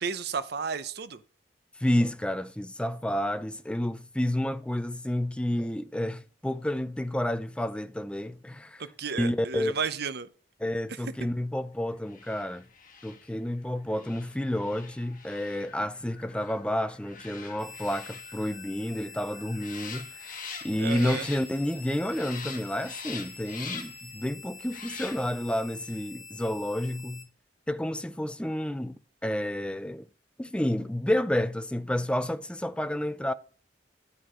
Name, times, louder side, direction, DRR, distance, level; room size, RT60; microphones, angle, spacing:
voice 1, 0.0-1.2 8.8-10.3 10.9-11.0 20.8-21.3, right 5 dB, 60° right, 0.7 m, -33 dB
voice 2, 1.8-8.8 9.2-9.7 10.6-12.7 13.0-20.1 20.6-27.3 27.7-30.0 30.4-33.3, left 1 dB, 5° left, 0.4 m, -30 dB
sound 1, 12.0-21.8 22.1-24.1 24.6-25.5 25.8-26.0, left 6 dB, 50° left, 1.5 m, -44 dB
sound 2, 17.6-27.2, left 4 dB, 30° left, 1.4 m, -47 dB
11.5 x 4.6 x 5.0 m
head